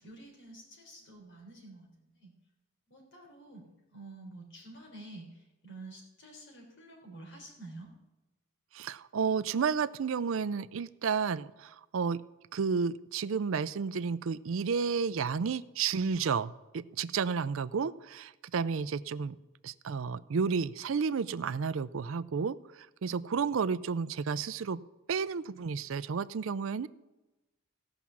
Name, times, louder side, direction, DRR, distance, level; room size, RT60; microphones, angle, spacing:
voice 1, 0.0-2.3 2.9-3.6 3.9-7.9, right 2 dB, 60° left, 1 dB, 3.8 m, -49 dB
voice 2, 8.7-12.2 12.5-19.4 19.6-22.6 23.0-24.8 25.1-26.9, right 5 dB, 65° right, 16 dB, 0.4 m, -31 dB
16.5 x 6.0 x 7.1 m, 1.0 s
head